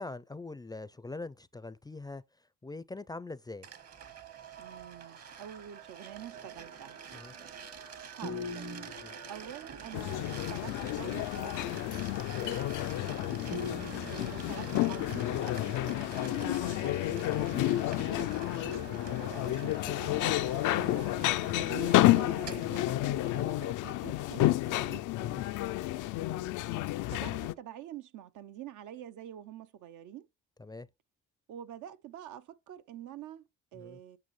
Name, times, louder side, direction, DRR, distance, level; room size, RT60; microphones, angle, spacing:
voice 1, 0.0-2.2 2.6-3.7 7.1-7.3 9.0-9.2 12.4-12.6 18.5-18.8 25.2-25.4 30.6-30.9 33.7-34.0, left 3 dB, 15° left, 0.4 m, -43 dB
sound 1, 3.6-23.1, right 6 dB, 55° right, 1.3 m, -47 dB
voice 2, 4.6-7.0 8.2-8.9 9.3-11.8 13.0-13.6 14.1-18.3 19.1-25.0 27.1-30.3 31.5-34.2, right 10 dB, 80° right, 0.7 m, -47 dB
sound 2, 8.2-9.9 13.5-15.3 18.6-20.2 22.1-23.3, left 2 dB, 40° right, 0.8 m, -43 dB
sound 3, 9.9-27.5, left 16 dB, 85° left, 0.5 m, -30 dB
8.7 x 6.0 x 3.2 m
cardioid pair, 90°, 30 cm